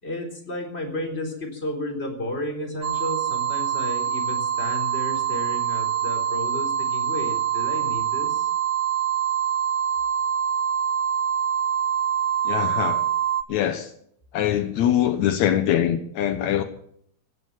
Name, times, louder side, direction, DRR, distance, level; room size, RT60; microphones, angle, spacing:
voice 1, 0.0-8.5, left 1 dB, 20° left, 2 dB, 3.9 m, -32 dB
sound 1, 2.8-13.4, right 9 dB, 75° right, 1.0 m, -25 dB
voice 2, 12.5-13.0 13.5-13.9 14.3-16.6, left 10 dB, 75° left, 8 dB, 2.2 m, -23 dB
16.5 x 11.0 x 7.4 m, 0.67 s
omnidirectional pair, 3.4 m